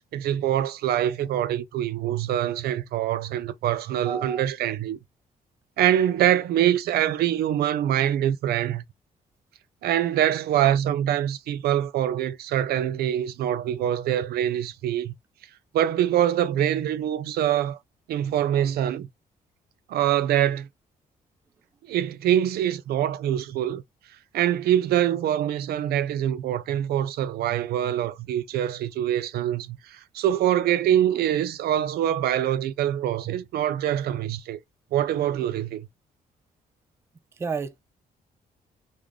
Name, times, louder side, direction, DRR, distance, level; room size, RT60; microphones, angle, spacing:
voice 1, 0.1-5.0 5.8-8.8 9.8-15.1 15.7-17.8 18.1-19.1 19.9-20.7 21.9-23.8 24.3-34.6 34.9-35.9, right 11 dB, 80° right, 0.5 m, -24 dB
voice 2, 4.0-4.4 37.3-37.8, right 5 dB, 15° right, 0.3 m, -31 dB
3.5 x 2.6 x 3.2 m
cardioid pair, 145°, 16 cm